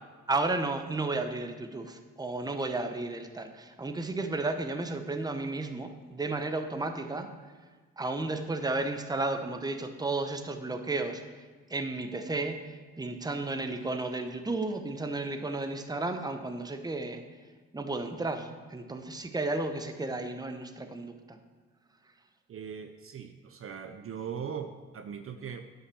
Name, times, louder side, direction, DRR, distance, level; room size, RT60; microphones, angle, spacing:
voice 1, 0.3-7.3 8.0-11.4 11.7-17.2 17.7-21.4, right 2 dB, 15° right, 7 dB, 0.9 m, -33 dB
voice 2, 22.5-25.6, right 7 dB, 45° right, 7 dB, 0.7 m, -40 dB
9.8 x 5.6 x 6.2 m, 1.4 s
cardioid pair, 90°, 30 cm